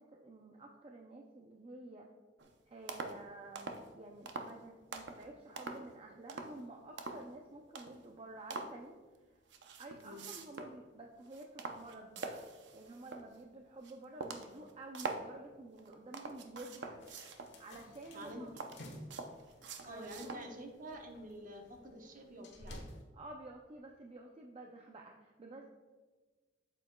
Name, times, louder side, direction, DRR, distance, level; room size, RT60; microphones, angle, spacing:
voice 1, 0.0-2.1 2.7-9.4 9.8-12.4 12.7-17.0 17.3-18.6 19.8-20.6 23.1-25.7, right 2 dB, 30° right, 1 dB, 0.5 m, -51 dB
sound 1, 2.4-2.5 2.9-3.2 3.6-3.9 4.3-4.6 4.9-5.2 5.6-5.9 6.3-6.6 7.0-7.3 7.8-8.1 8.5-8.8 9.5-10.8 11.2-13.4 13.8-13.9 14.2-15.3 15.8-17.6 18.1-20.5 20.9-21.0, right 3 dB, 75° right, 0.7 m, -44 dB
sound 2, 17.0-23.0, left 1 dB, 85° left, 1.2 m, -54 dB
voice 2, 18.1-18.6 19.8-22.9, right 1 dB, 45° right, 3 dB, 1.0 m, -48 dB
8.5 x 7.5 x 2.3 m, 1.3 s
head